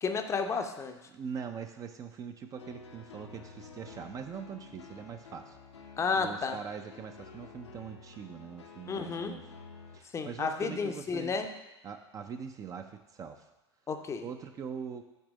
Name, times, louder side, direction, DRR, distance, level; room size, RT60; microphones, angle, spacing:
voice 1, 0.0-1.0 6.0-6.6 8.9-9.3 10.1-11.5 13.9-14.2, left 5 dB, 20° left, 6 dB, 0.6 m, -32 dB
voice 2, 1.1-5.6 6.1-9.4 9.9-11.4 11.8-13.5 14.2-15.0, right 7 dB, 20° right, 6 dB, 0.5 m, -42 dB
sound 1, 2.6-10.0, left 4 dB, 70° left, 0.8 m, -51 dB
8.0 x 3.4 x 6.3 m, 1.0 s
figure-of-eight pair, 85°, 15 cm